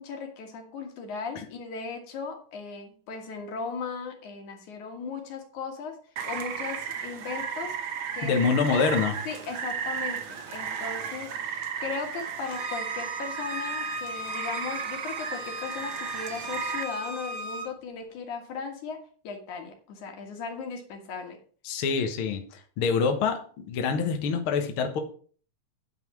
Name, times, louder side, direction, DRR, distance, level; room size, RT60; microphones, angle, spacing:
voice 1, 0.0-6.0 6.3-7.8 8.1-8.8 9.3-21.4, left 5 dB, 80° left, 3 dB, 3.2 m, -37 dB
Rain, 6.2-16.8, right 7 dB, 60° right, 1.4 m, -34 dB
voice 2, 8.2-9.2 21.6-25.0, left 5 dB, 55° left, 5 dB, 1.7 m, -26 dB
Bowed string instrument, 12.4-17.7, equal, 40° right, 0.7 m, -37 dB
9.5 x 5.2 x 6.1 m, 0.43 s
omnidirectional pair, 3.4 m